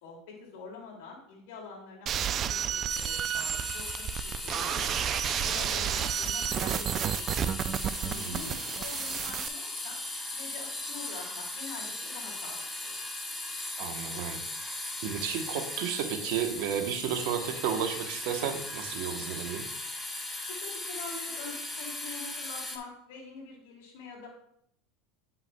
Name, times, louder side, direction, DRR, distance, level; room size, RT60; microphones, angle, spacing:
voice 1, 0.0-5.1 5.4-7.5 8.0-10.0 10.3-12.9 20.5-24.3, left 4 dB, 75° left, 0 dB, 2.3 m, -45 dB
sound 1, 2.1-9.5, right 9 dB, 40° right, 0.3 m, -31 dB
sound 2, 2.9-22.8, left 2 dB, 10° left, 0.9 m, -38 dB
voice 2, 8.1-8.6 13.8-19.6, right 8 dB, 65° right, 6 dB, 0.9 m, -33 dB
9.1 x 5.7 x 2.2 m, 0.70 s
supercardioid pair, 110°, 0 cm